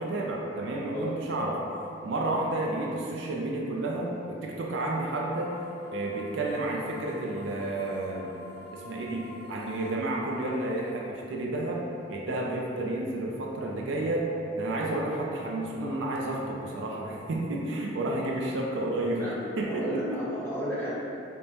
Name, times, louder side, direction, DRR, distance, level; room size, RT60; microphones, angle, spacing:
voice 1, 0.0-1.6 2.0-5.6 5.9-8.3 8.7-11.8 12.1-14.3 14.6-19.2 19.6-20.2, right 2 dB, 65° right, -1 dB, 0.4 m, -31 dB
sound 1, 5.1-11.0, left 2 dB, 40° left, 0.8 m, -47 dB
voice 2, 19.6-20.9, equal, 10° left, -11 dB, 0.9 m, -33 dB
5.1 x 2.1 x 2.8 m, 2.8 s
head